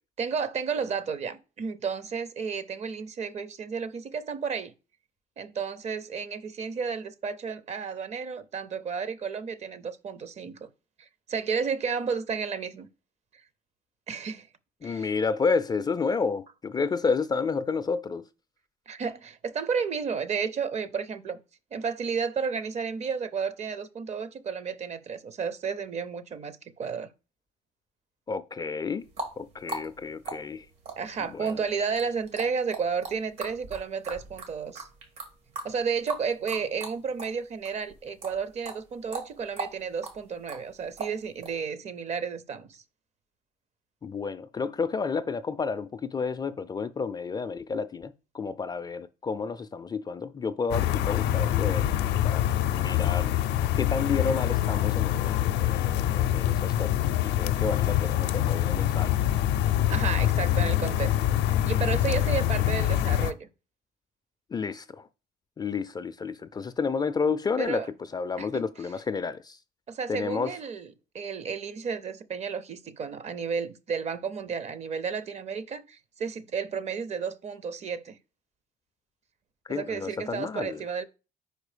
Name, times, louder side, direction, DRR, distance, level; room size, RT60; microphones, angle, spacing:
voice 1, 0.2-4.7 5.4-10.7 11.0-12.9 14.1-14.5 14.8-15.1 18.9-21.4 21.7-27.1 31.0-34.9 35.6-42.8 59.9-61.2 61.5-63.5 67.6-67.9 68.4-68.6 69.9-78.2 79.7-81.1, right 6 dB, 40° right, 0.6 m, -32 dB
voice 2, 14.8-18.2 28.3-29.1 29.4-30.7 31.3-31.5 44.0-53.4 53.8-56.9 57.2-59.1 64.5-65.1 65.6-67.9 68.1-69.6 70.1-70.5 79.7-80.8, left 5 dB, 25° left, 0.3 m, -31 dB
sound 1, 29.0-37.4 37.6-41.5, right 3 dB, 80° right, 2.0 m, -39 dB
sound 2, 50.7-63.3, left 12 dB, 90° left, 0.5 m, -25 dB
4.9 x 4.5 x 5.0 m
cardioid pair, 110°, 17 cm